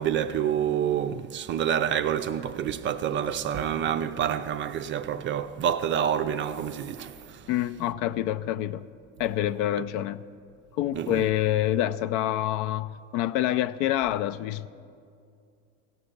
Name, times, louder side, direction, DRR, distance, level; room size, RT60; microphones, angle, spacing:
voice 1, 0.0-7.4 10.9-11.2, right 9 dB, 30° right, 0.4 m, -28 dB
voice 2, 7.5-8.8 9.2-10.2 10.8-14.7, left 13 dB, 65° left, 0.5 m, -27 dB
16.5 x 6.0 x 6.6 m
hypercardioid pair, 95°, 38 cm